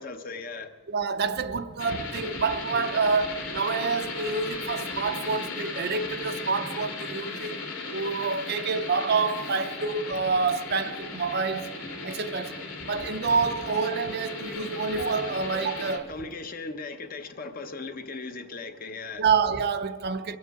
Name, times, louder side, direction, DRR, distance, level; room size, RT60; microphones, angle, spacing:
voice 1, 0.0-0.7 16.1-19.2, left 3 dB, 40° left, 0.9 m, -38 dB
voice 2, 0.9-7.6 7.9-11.7 12.0-16.1 19.2-20.4, right 5 dB, 50° right, 0.6 m, -27 dB
sound 1, 1.8-16.0, left 3 dB, 85° left, 2.5 m, -36 dB
22.5 x 8.4 x 4.8 m
head